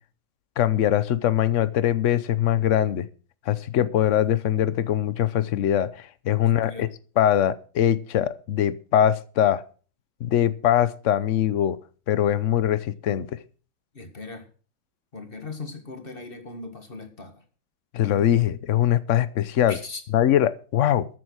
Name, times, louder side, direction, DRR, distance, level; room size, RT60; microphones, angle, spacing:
voice 1, 0.6-3.1 3.5-6.9 7.2-9.6 10.2-11.8 12.1-13.4 17.9-19.8 20.1-21.1, left 11 dB, 60° left, 0.8 m, -22 dB
voice 2, 6.4-6.9 13.9-14.5 15.1-17.4 19.7-20.0, left 3 dB, 30° left, 1.8 m, -39 dB
14.0 x 7.8 x 6.3 m
omnidirectional pair, 2.1 m